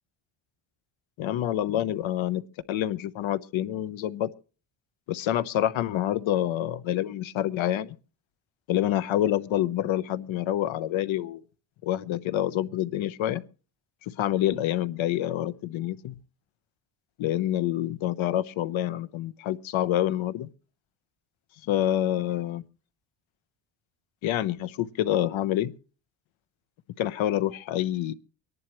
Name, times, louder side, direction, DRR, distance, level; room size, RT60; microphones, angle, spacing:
voice 1, 1.2-2.4 2.7-4.3 5.1-7.9 8.7-11.4 11.8-13.4 14.1-16.2 17.2-20.5 21.6-22.6 24.2-25.7 27.0-28.1, left 12 dB, 70° left, 0.9 m, -27 dB
25.0 x 11.0 x 3.0 m
cardioid pair, 165°, 48 cm